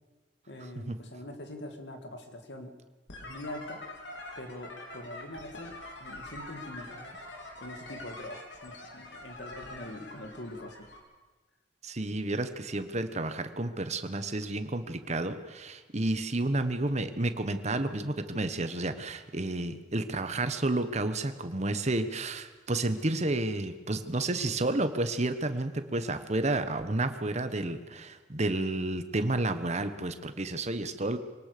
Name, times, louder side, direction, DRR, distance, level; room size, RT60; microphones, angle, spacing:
voice 1, 0.5-2.7 3.1-3.9 4.4-7.2 7.6-10.9, left 1 dB, 70° left, 6 dB, 2.4 m, -43 dB
sound 1, 3.1-11.0, left 2 dB, 90° left, 4.2 m, -45 dB
voice 2, 11.8-31.2, right 2 dB, 40° right, 10 dB, 1.3 m, -31 dB
24.0 x 18.5 x 6.8 m, 1.3 s
head